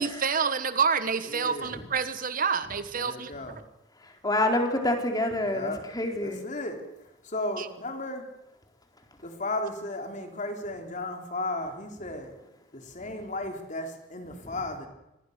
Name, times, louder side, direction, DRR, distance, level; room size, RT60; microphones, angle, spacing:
voice 1, 0.0-3.3 7.6-7.7, right 6 dB, 45° right, 12 dB, 1.2 m, -28 dB
voice 2, 1.3-1.8 3.0-3.6 5.5-5.8 6.2-6.8 7.2-8.2 9.2-12.3 12.7-14.9, left 2 dB, 40° left, 4 dB, 3.8 m, -34 dB
voice 3, 4.2-6.4, left 1 dB, 20° left, 4 dB, 4.3 m, -27 dB
26.0 x 21.0 x 6.8 m, 0.93 s
head